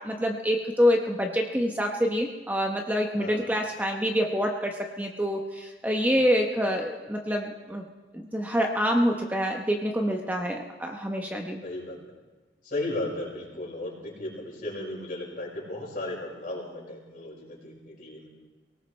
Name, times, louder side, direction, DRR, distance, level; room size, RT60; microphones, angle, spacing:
voice 1, 0.0-7.8 8.1-11.6, equal, 10° right, 2 dB, 0.9 m, -26 dB
voice 2, 3.2-3.5 11.6-12.0 12.6-18.3, left 2 dB, 50° left, -3 dB, 5.4 m, -35 dB
24.0 x 18.0 x 3.2 m, 1.3 s
head